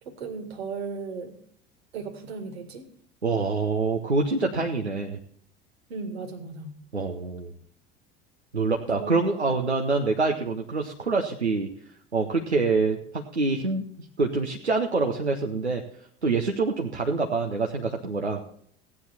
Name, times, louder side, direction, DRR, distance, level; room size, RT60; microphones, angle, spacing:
voice 1, 0.0-1.4 1.9-2.9 5.9-6.8 7.5-7.6 8.8-9.2, right 4 dB, 70° right, 7 dB, 2.0 m, -36 dB
voice 2, 3.2-5.2 6.9-7.5 8.5-11.7 12.1-15.8 16.2-18.4, right 3 dB, 90° right, 1 dB, 0.9 m, -26 dB
16.0 x 9.7 x 4.2 m, 0.62 s
figure-of-eight pair, 70°, 33 cm